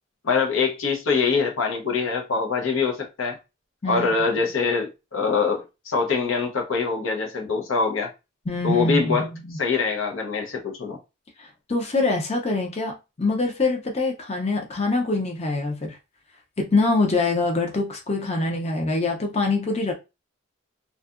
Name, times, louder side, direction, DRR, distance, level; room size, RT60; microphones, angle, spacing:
voice 1, 0.2-3.4 3.9-8.1 8.6-9.3 9.6-11.0, left 5 dB, 80° left, 0.7 m, -24 dB
voice 2, 3.8-4.1 4.4-4.5 8.5-9.6 11.4-16.0 16.6-19.9, left 3 dB, 30° left, 0.5 m, -24 dB
2.7 x 2.3 x 2.4 m
head